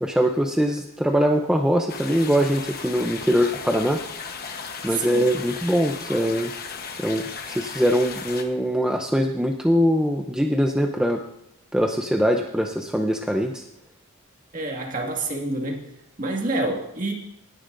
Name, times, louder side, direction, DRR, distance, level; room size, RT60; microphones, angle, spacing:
voice 1, 0.0-4.0 4.8-6.5 7.0-11.2 11.7-13.6, equal, 5° right, 2 dB, 0.5 m, -22 dB
sound 1, 1.9-8.4, left 5 dB, 45° left, 1.1 m, -36 dB
voice 2, 4.9-5.3 14.5-15.8 16.2-17.1, right 2 dB, 40° right, 0 dB, 1.9 m, -27 dB
18.5 x 10.0 x 2.6 m, 0.80 s
head